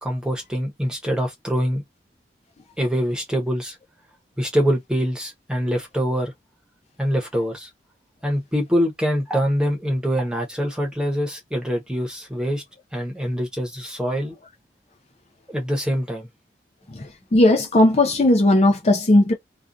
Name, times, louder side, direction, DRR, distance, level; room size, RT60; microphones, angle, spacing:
voice 1, 0.0-1.8 2.8-3.8 4.4-6.3 7.0-7.7 8.2-12.6 12.9-14.3 15.5-16.3, equal, 5° right, 0.8 m, -24 dB
voice 2, 16.9-19.3, left 1 dB, 40° left, 0.4 m, -17 dB
2.4 x 2.4 x 2.5 m
head